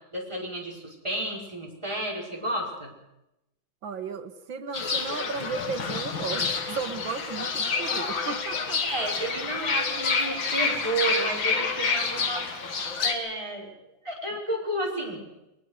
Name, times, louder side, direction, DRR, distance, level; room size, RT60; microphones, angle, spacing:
voice 1, 0.1-2.9 7.6-7.7 8.8-12.5 13.0-13.7 14.0-15.2, right 1 dB, 15° right, -2 dB, 5.0 m, -31 dB
voice 2, 3.8-9.0, right 5 dB, 70° right, 8 dB, 2.1 m, -35 dB
Fowl / Bird, 4.7-13.1, left 4 dB, 70° left, 2.5 m, -28 dB
21.5 x 20.5 x 6.5 m, 0.89 s
omnidirectional pair, 2.2 m